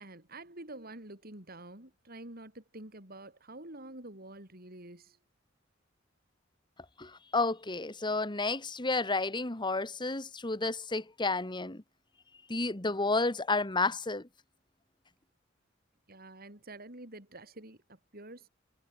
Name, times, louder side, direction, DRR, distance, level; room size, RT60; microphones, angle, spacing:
voice 1, 0.0-5.2 16.1-18.5, right 2 dB, 50° right, 6.3 m, -48 dB
voice 2, 7.0-11.8 12.5-14.2, left 3 dB, 25° left, 1.7 m, -31 dB
head